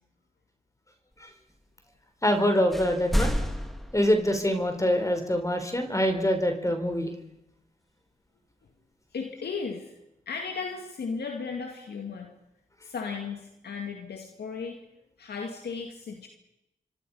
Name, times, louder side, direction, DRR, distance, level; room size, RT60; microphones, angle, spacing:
voice 1, 2.2-3.4 3.9-7.1, equal, 20° left, 5 dB, 4.4 m, -25 dB
sound 1, 2.2-2.4 2.7-4.8, equal, ahead, 3.1 m, -30 dB
voice 2, 9.1-9.9 10.3-12.3 12.8-14.8 15.2-16.3, left 5 dB, 90° left, 3 dB, 2.2 m, -35 dB
26.5 x 24.5 x 5.6 m, 0.88 s
cardioid pair, 40°, 16 cm